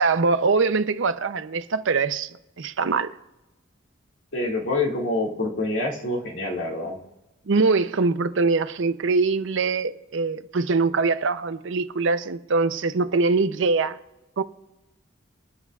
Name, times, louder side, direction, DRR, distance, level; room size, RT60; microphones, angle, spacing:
voice 1, 0.0-2.3 2.6-3.1 7.5-14.0 14.4-14.5, right 4 dB, 60° right, 0.6 m, -23 dB
voice 2, 4.3-7.0, left 2 dB, 60° left, 2.2 m, -26 dB
26.5 x 9.7 x 2.4 m
head